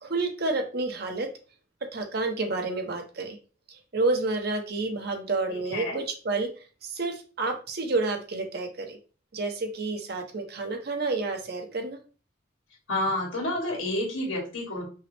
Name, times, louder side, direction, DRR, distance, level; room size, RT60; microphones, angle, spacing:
voice 1, 0.0-1.3 1.8-3.4 3.7-6.5 6.8-9.0 9.3-12.0, right 3 dB, 50° right, 4 dB, 0.7 m, -29 dB
voice 2, 5.5-6.0 12.9-14.8, left 1 dB, 85° left, -2 dB, 1.9 m, -29 dB
5.5 x 2.1 x 3.2 m, 0.35 s
head